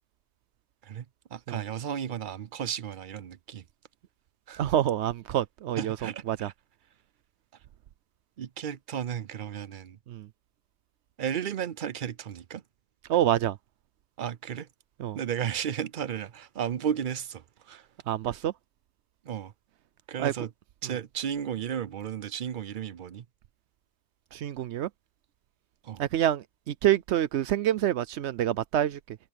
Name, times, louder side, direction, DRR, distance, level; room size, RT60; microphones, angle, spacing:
voice 1, 1.3-3.6 4.5-4.6 5.8-6.5 8.4-10.0 11.2-12.6 14.2-14.7 15.1-17.9 19.3-19.5 20.1-20.5 20.8-23.2 25.8-26.0, right 9 dB, 55° right, 0.7 m, -34 dB
voice 2, 4.6-6.5 10.1-10.3 13.1-13.6 15.0-15.2 18.1-18.5 20.2-20.3 24.3-24.9 26.0-29.2, right 11 dB, 80° right, 0.9 m, -27 dB
omnidirectional pair, 1.1 m